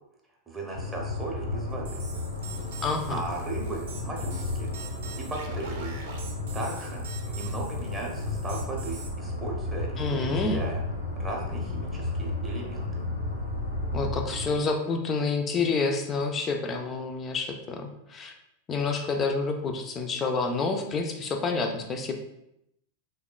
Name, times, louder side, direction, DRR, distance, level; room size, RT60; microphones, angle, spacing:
voice 1, 0.5-2.0 3.1-4.7 5.2-6.0 6.5-10.8 11.2-13.0, right 3 dB, 15° right, -2 dB, 0.6 m, -37 dB
sound 1, 0.7-14.5, left 2 dB, 80° left, 0.6 m, -33 dB
sound 2, 1.8-9.1, right 5 dB, 60° right, 0.5 m, -44 dB
voice 2, 2.8-3.2 10.0-10.6 13.9-18.3 18.7-22.1, left 4 dB, 25° left, 4 dB, 0.3 m, -28 dB
3.3 x 2.1 x 2.3 m, 0.81 s
figure-of-eight pair, 90°, 0 cm